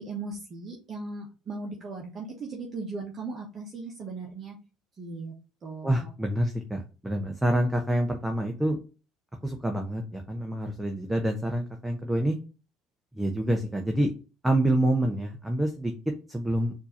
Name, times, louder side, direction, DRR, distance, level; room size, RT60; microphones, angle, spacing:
voice 1, 0.0-4.6 5.0-5.3 5.6-6.1, right 3 dB, 40° right, -1 dB, 1.1 m, -38 dB
voice 2, 5.8-8.8 9.4-12.4 13.1-14.1 14.4-15.9 16.3-16.7, right 1 dB, 10° right, 3 dB, 0.8 m, -27 dB
4.4 x 2.8 x 4.4 m, 0.33 s
hypercardioid pair, 75°, 0 cm